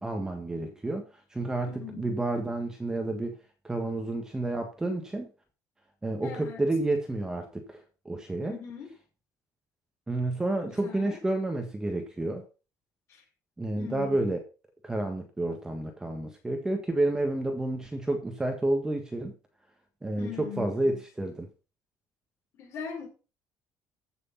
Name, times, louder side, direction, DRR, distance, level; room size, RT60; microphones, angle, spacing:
voice 1, 0.0-3.4 3.6-5.3 6.0-8.6 10.1-12.4 13.6-14.4 14.8-19.3 20.0-21.5, right 2 dB, 10° right, 4 dB, 1.5 m, -30 dB
voice 2, 1.7-2.2 6.2-6.6 8.4-8.9 10.6-11.2 13.1-13.2 13.7-14.3 20.2-21.0 22.6-23.1, left 7 dB, 45° left, 0 dB, 5.9 m, -41 dB
14.5 x 6.4 x 5.7 m, 0.33 s
cardioid pair, 175°, 7 cm